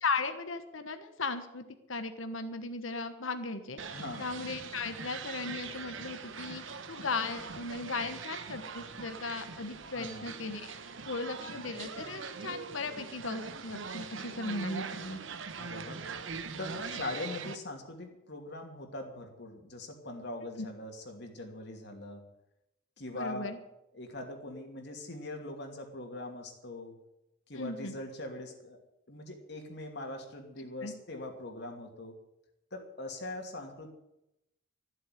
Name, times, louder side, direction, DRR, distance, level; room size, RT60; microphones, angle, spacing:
voice 1, 0.0-10.7 11.1-15.2 20.6-20.7 23.1-23.6 27.5-28.0 30.8-30.9, left 3 dB, 80° left, 9 dB, 1.3 m, -37 dB
sound 1, 3.8-17.6, right 5 dB, 70° right, 1.0 m, -42 dB
voice 2, 3.9-4.3 10.0-10.3 15.5-16.0 16.6-22.2 23.0-23.5 23.9-26.9 27.5-28.8 29.1-32.2 32.7-33.9, left 2 dB, 55° left, 3 dB, 2.6 m, -42 dB
13.5 x 8.2 x 9.8 m, 0.87 s
head